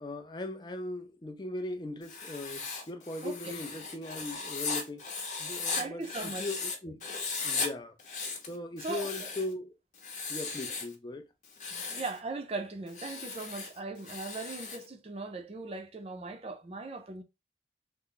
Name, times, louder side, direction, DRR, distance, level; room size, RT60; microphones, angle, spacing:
voice 1, 0.0-5.0 5.4-7.0 7.4-8.0 8.4-9.7 10.3-11.3, left 2 dB, 25° left, 0.4 m, -39 dB
Writing, 2.0-6.8 7.0-7.7 8.0-9.5 10.0-10.9 11.4-12.2 12.9-14.9, left 4 dB, 45° left, 0.8 m, -37 dB
voice 2, 3.2-3.6 5.8-6.5 8.8-9.1 11.7-17.2, right 3 dB, 35° right, 0.4 m, -39 dB
3.3 x 2.0 x 3.8 m
head